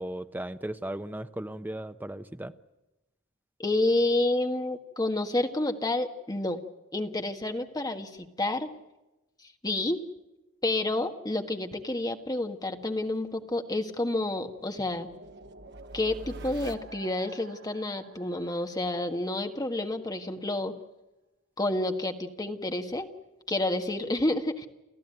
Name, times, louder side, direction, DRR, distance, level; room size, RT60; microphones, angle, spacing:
voice 1, 0.0-2.5, right 1 dB, 10° right, 10 dB, 0.8 m, -36 dB
voice 2, 3.6-6.6 6.9-8.7 9.6-10.0 10.6-15.1 15.9-20.7 21.6-23.1 23.5-24.7, left 2 dB, 20° left, 5 dB, 1.6 m, -29 dB
sound 1, 12.8-19.6, right 2 dB, 55° right, 1.4 m, -47 dB
30.0 x 14.0 x 9.1 m, 1.0 s
head